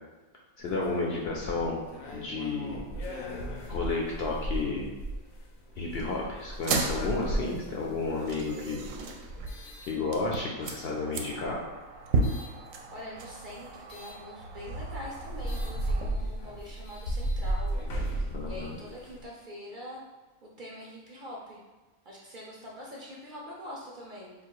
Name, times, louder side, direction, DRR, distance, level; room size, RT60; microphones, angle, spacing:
sound 1, 0.6-10.6 11.3-12.5 13.9-14.2 14.7-14.8 15.1-19.2, right 1 dB, 85° left, 1.2 m, -36 dB
voice 1, 0.6-1.8 2.1-2.8 3.7-4.9 5.8-8.8 9.9-11.6 18.3-18.7, left 3 dB, 60° left, -2 dB, 0.7 m, -32 dB
sound 2, 6.5-16.1, right 3 dB, 75° right, 0.9 m, -35 dB
voice 2, 12.9-17.8 18.5-20.0 20.4-21.6 22.0-24.3, left 1 dB, 50° right, -4 dB, 0.6 m, -44 dB
3.8 x 2.4 x 4.6 m, 1.2 s
omnidirectional pair, 1.4 m